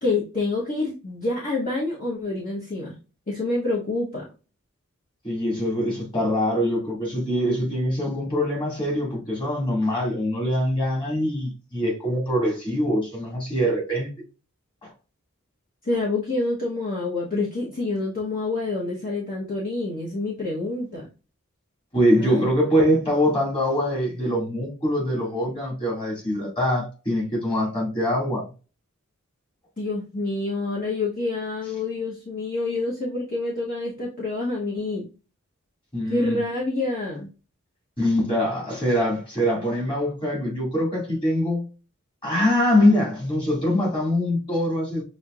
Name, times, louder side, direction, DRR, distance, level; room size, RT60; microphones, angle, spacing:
voice 1, 0.0-3.0 3.3-4.2 15.8-21.1 22.2-22.4 29.8-35.1 36.1-37.3, left 2 dB, 40° left, 1.2 m, -27 dB
voice 2, 5.2-14.1 14.8-14.9 21.9-28.5 35.9-36.4 38.0-41.7 42.2-45.0, equal, 25° left, 2.3 m, -23 dB
6.6 x 2.8 x 2.5 m
head